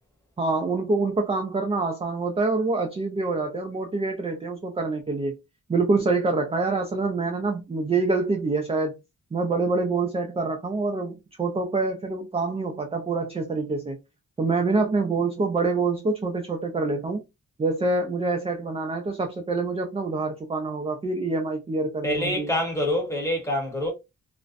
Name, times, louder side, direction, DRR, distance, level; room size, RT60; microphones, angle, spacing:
voice 1, 0.4-5.4 5.7-8.9 9.3-14.0 14.4-17.2 17.6-22.5, right 3 dB, 20° right, 0.3 m, -26 dB
voice 2, 22.0-23.9, left 1 dB, 10° left, 0.8 m, -26 dB
2.4 x 2.1 x 2.4 m
wide cardioid pair, 150°, 30 cm